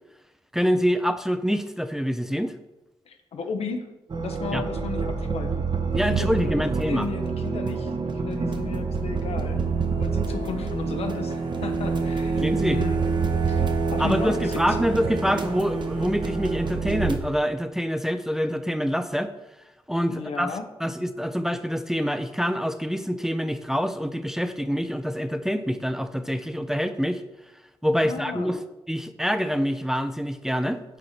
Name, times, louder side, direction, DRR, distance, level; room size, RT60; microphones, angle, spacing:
voice 1, 0.5-2.5 4.5-4.6 5.9-7.1 12.4-12.8 14.0-19.3 19.9-27.2 27.8-28.6 28.9-31.0, equal, 5° right, 9 dB, 0.5 m, -26 dB
voice 2, 3.1-3.9 4.2-6.5 6.9-9.6 10.0-13.0 13.5-14.9 20.1-20.7 27.9-28.6, left 5 dB, 70° left, 6 dB, 0.8 m, -35 dB
sound 1, 4.1-17.2, right 4 dB, 45° right, 0.9 m, -27 dB
5.2 x 4.2 x 5.9 m, 1.0 s
supercardioid pair, 55°, 11 cm